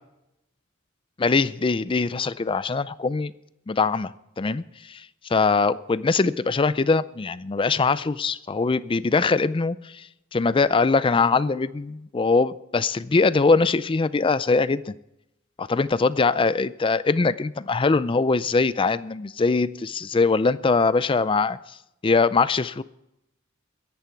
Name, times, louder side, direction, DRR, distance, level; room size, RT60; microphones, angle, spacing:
voice 1, 1.2-3.3 3.7-10.1 10.3-14.9 15.6-21.6 22.0-22.8, left 4 dB, 25° left, 16 dB, 0.4 m, -22 dB
22.5 x 10.5 x 4.6 m, 0.86 s
head